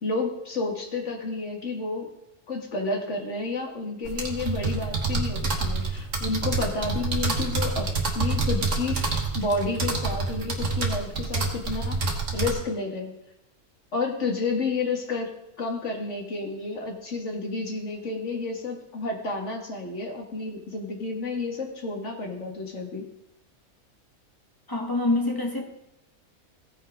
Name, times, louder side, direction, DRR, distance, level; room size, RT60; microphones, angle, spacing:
voice 1, 0.0-2.1 2.5-12.0 12.3-13.1 13.9-15.3 15.6-23.1, left 3 dB, 55° left, 0 dB, 2.1 m, -30 dB
sound 1, 4.1-12.5, right 3 dB, 55° right, 1.8 m, -27 dB
voice 2, 24.7-25.6, left 2 dB, 15° left, 1 dB, 1.4 m, -25 dB
16.0 x 5.6 x 5.1 m, 0.84 s
omnidirectional pair, 1.5 m